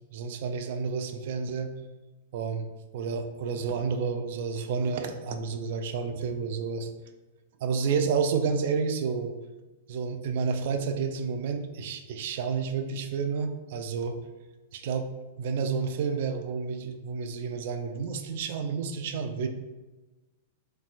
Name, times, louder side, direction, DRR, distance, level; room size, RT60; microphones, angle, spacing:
voice 1, 0.1-1.7 2.3-2.7 2.9-6.9 7.6-9.3 9.9-14.2 14.7-15.1 15.4-19.5, right 5 dB, 50° right, 6 dB, 0.3 m, -30 dB
4.1 x 2.1 x 2.5 m, 1.1 s
figure-of-eight pair, 100°, 0 cm